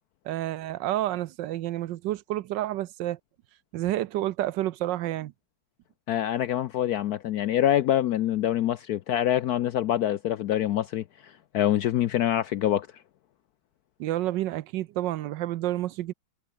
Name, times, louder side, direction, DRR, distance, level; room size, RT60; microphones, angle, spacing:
voice 1, 0.2-3.2 3.7-5.3 14.0-16.1, right 14 dB, 75° right, 1.2 m, -29 dB
voice 2, 6.1-12.9, left 11 dB, 70° left, 0.9 m, -25 dB
omnidirectional pair, 2.1 m